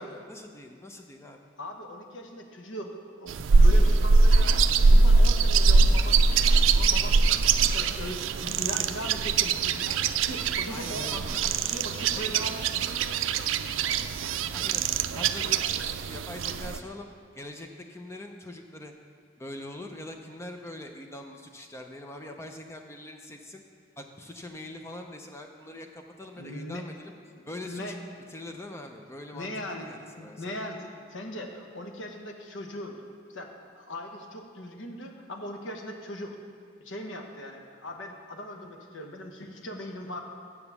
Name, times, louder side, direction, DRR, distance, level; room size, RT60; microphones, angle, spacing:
voice 1, 0.0-1.4 8.7-9.0 10.7-11.6 12.1-12.2 13.1-13.8 14.0-14.2 14.5-18.9 19.4-23.6 24.0-27.1 27.4-28.0 28.3-30.6, left 1 dB, 15° left, 4 dB, 0.4 m, -43 dB
voice 2, 1.6-6.4 6.7-11.4 11.6-13.3 26.4-26.9 27.6-28.0 29.3-29.8 30.2-33.0 33.3-36.4 36.8-40.2, equal, 80° left, 3 dB, 1.0 m, -39 dB
sound 1, 3.3-16.8, right 4 dB, 85° right, 0.4 m, -22 dB
7.1 x 7.0 x 6.9 m, 2.1 s
head